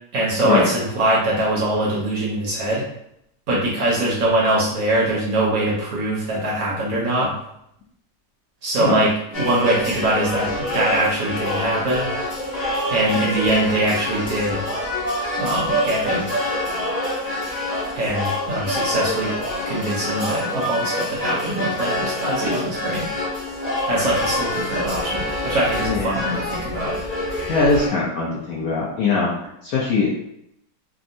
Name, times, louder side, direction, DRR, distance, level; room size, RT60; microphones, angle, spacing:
voice 1, 0.1-2.8 3.5-7.3 8.6-12.1 12.9-14.6 15.4-16.3 17.9-19.3 19.7-23.1 23.9-27.0, right 1 dB, 65° right, -4 dB, 1.0 m, -22 dB
sound 1, 9.3-27.9, left 1 dB, 50° left, 0.4 m, -26 dB
voice 2, 25.8-26.3 27.5-29.3 29.6-30.1, left 3 dB, 70° left, -5 dB, 0.8 m, -21 dB
3.5 x 2.0 x 2.6 m, 0.77 s
omnidirectional pair, 2.0 m